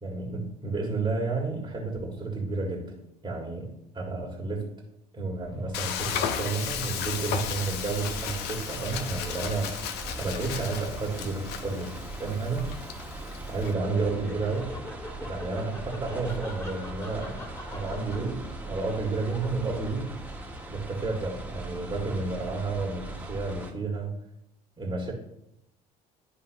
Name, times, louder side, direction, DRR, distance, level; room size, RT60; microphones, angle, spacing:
voice 1, 0.0-2.9 3.2-4.7 5.1-9.8 10.2-13.2 13.5-14.7 15.3-20.1 20.7-24.1 24.8-25.1, right 3 dB, 20° right, -2 dB, 1.9 m, -31 dB
sound 1, 5.4-23.7, right 2 dB, 5° right, 1.6 m, -40 dB
Frying (food), 5.7-13.7, left 8 dB, 55° left, 0.8 m, -35 dB
Laughter, 13.8-20.3, left 1 dB, 15° left, 2.2 m, -43 dB
11.5 x 5.2 x 2.9 m, 0.81 s
figure-of-eight pair, 60°, 21 cm